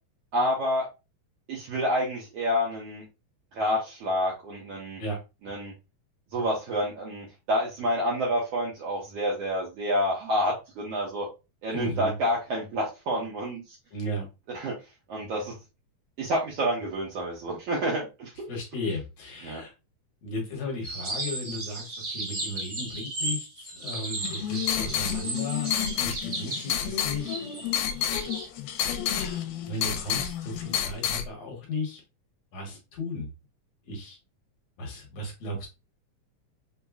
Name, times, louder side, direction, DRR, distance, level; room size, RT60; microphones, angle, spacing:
voice 1, 0.3-0.9 1.5-3.0 3.5-5.0 5.4-5.7 6.3-11.3 11.6-13.8 14.5-14.8 15.1-15.5 16.2-18.5 19.4-19.6, equal, 70° right, -4 dB, 1.7 m, -28 dB
voice 2, 11.7-12.2 13.9-14.3 18.5-19.7 20.2-25.7 26.0-27.4 29.1-32.0 32.5-33.3 33.9-34.2 34.8-35.7, left 1 dB, 65° left, 0 dB, 2.0 m, -35 dB
sound 1, 20.8-28.5, right 2 dB, 50° right, 1.1 m, -35 dB
sound 2, 24.2-31.3, left 10 dB, 80° left, 2.0 m, -30 dB
5.4 x 2.1 x 2.3 m, 0.27 s
omnidirectional pair, 3.6 m